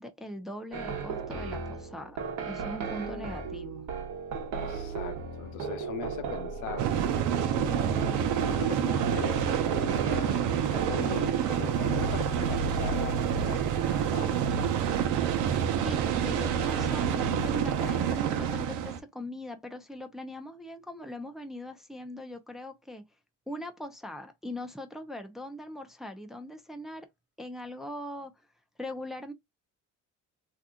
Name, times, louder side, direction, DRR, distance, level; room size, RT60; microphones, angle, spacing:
voice 1, 0.0-2.2 2.4-3.9 15.8-23.0 23.5-27.1 27.4-28.3 28.8-29.3, left 1 dB, ahead, 0.5 m, -41 dB
sound 1, 0.7-11.1, right 5 dB, 65° right, 1.1 m, -36 dB
voice 2, 4.6-6.9 7.6-9.4 10.2-14.5, left 9 dB, 80° left, 0.8 m, -40 dB
sound 2, 6.8-19.0, right 8 dB, 80° right, 0.8 m, -28 dB
2.8 x 2.3 x 3.6 m
cardioid pair, 140°, 30 cm